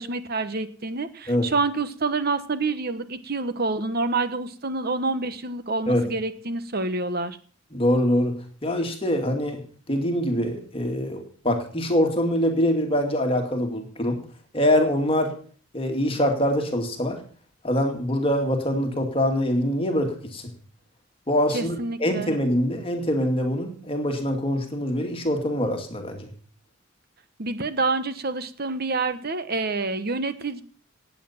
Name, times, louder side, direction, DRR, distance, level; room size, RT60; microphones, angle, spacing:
voice 1, 0.0-7.4 21.5-22.3 27.4-30.6, right 3 dB, 50° right, 12 dB, 1.1 m, -27 dB
voice 2, 7.7-8.4 8.6-9.6 9.9-14.2 14.5-15.3 15.7-17.2 17.6-20.4 21.3-26.3, equal, 25° left, 4 dB, 2.2 m, -24 dB
18.5 x 8.4 x 5.8 m, 0.44 s
head